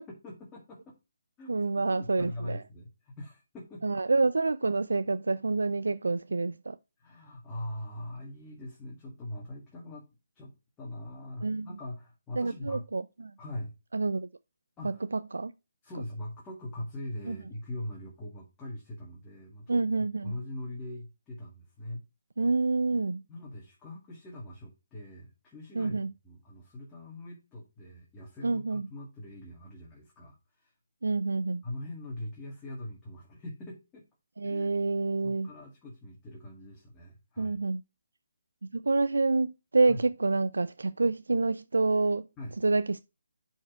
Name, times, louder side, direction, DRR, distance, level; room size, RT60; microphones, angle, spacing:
voice 1, 0.1-1.0 1.4-4.0 7.0-10.1 10.3-10.5 10.8-12.8 13.4-13.7 14.8-15.0 15.8-22.0 23.3-30.7 31.6-34.0 34.4-34.8 35.2-37.6 39.9-40.0 42.4-42.6, left 1 dB, 15° left, 2.1 m, -42 dB
voice 2, 1.5-2.6 3.8-6.8 11.4-11.7 12.4-13.3 13.9-14.3 15.3-15.5 17.3-17.4 19.7-20.3 22.4-23.2 25.7-26.1 28.4-28.9 31.0-31.6 34.4-35.5 37.4-37.8 38.6-42.3 42.6-43.0, right 3 dB, 80° right, 0.4 m, -27 dB
7.3 x 4.6 x 4.8 m
figure-of-eight pair, 150°, 0 cm